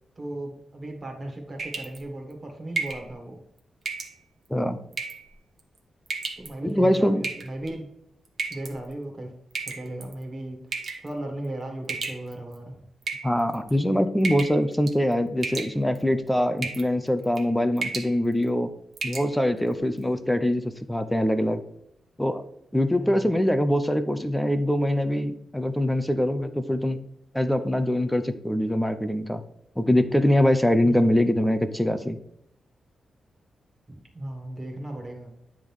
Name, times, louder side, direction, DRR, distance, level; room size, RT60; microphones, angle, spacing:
voice 1, 0.2-3.4 6.4-7.8 8.5-9.3 9.7-10.6 11.0-12.8 22.9-23.3 30.8-31.1 33.9-35.3, right 1 dB, 25° right, 2 dB, 1.8 m, -36 dB
sound 1, 1.6-2.0 2.8-3.1 3.9-4.1 4.9-5.3 6.1-6.5 7.2-7.7 8.4-8.7 9.6-10.1 10.7-11.1 11.9-12.5 13.0-13.7 14.2-14.6 14.9-15.1 15.4-16.0 16.6-16.9 17.2-17.5 17.8-18.1 18.5-18.6 19.0-19.3, right 4 dB, 45° right, 1.1 m, -32 dB
voice 2, 6.6-7.2 13.2-18.7 19.0-21.6 22.2-22.4 22.7-27.0 27.3-29.4 29.8-32.2, left 1 dB, 5° left, 10 dB, 0.6 m, -23 dB
9.6 x 3.6 x 4.7 m, 0.76 s
wide cardioid pair, 140°, 0 cm